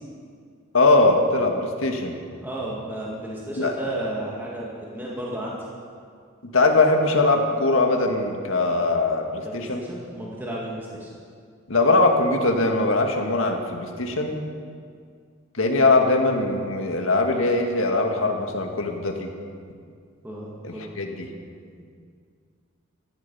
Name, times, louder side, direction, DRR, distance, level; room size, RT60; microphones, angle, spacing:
voice 1, 0.7-2.1 3.6-3.8 6.5-9.8 11.7-14.4 15.5-19.3 20.6-21.3, left 2 dB, 75° left, 3 dB, 1.9 m, -21 dB
voice 2, 2.4-5.6 9.4-11.1 20.2-20.9 21.8-21.9, right 1 dB, 10° right, -5 dB, 2.1 m, -33 dB
15.5 x 14.0 x 5.6 m, 2.1 s
head